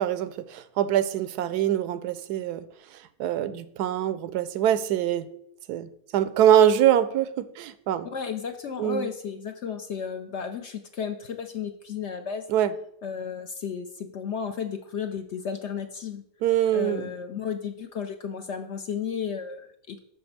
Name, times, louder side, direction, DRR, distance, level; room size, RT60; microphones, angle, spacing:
voice 1, 0.0-2.6 3.2-5.3 5.7-8.1 8.8-9.1 12.5-12.7 16.4-17.1, right 10 dB, 85° right, 14 dB, 1.1 m, -24 dB
voice 2, 8.1-12.4 13.0-16.2 16.7-20.0, left 7 dB, 60° left, 7 dB, 0.7 m, -33 dB
5.8 x 5.2 x 6.5 m, 0.72 s
omnidirectional pair, 1.7 m